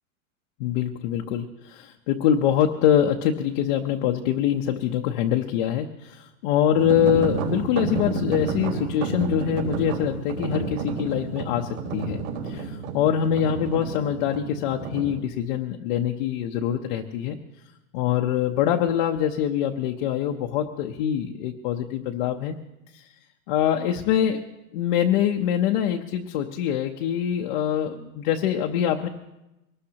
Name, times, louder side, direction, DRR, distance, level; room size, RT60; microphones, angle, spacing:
voice 1, 0.6-17.4 17.9-22.6 22.9-23.1 23.5-24.4 24.7-29.1, left 10 dB, 40° left, 2 dB, 0.8 m, -24 dB
sound 1, 6.7-15.1, right 4 dB, 65° right, 4.6 m, -30 dB
23.0 x 19.5 x 2.9 m, 0.94 s
supercardioid pair, 170°, 42 cm